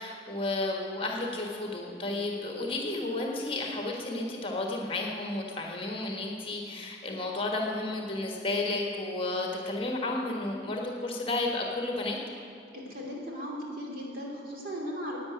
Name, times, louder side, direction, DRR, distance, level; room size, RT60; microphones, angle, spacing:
voice 1, 0.0-12.2, left 2 dB, 30° left, 0 dB, 1.5 m, -32 dB
voice 2, 12.7-15.2, equal, 50° right, -2 dB, 2.9 m, -37 dB
12.0 x 8.6 x 9.4 m, 2.5 s
head